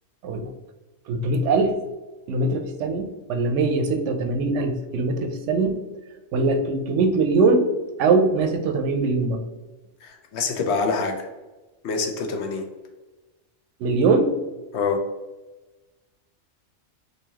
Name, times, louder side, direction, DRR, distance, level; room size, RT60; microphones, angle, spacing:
voice 1, 1.1-1.8 2.3-5.8 6.3-7.7 8.0-9.5 13.8-14.4, right 3 dB, 90° right, 6 dB, 0.9 m, -22 dB
voice 2, 10.0-11.3 11.8-12.7 14.7-15.0, left 4 dB, 70° left, 4 dB, 0.9 m, -25 dB
3.9 x 2.6 x 2.8 m, 1.1 s
omnidirectional pair, 1.2 m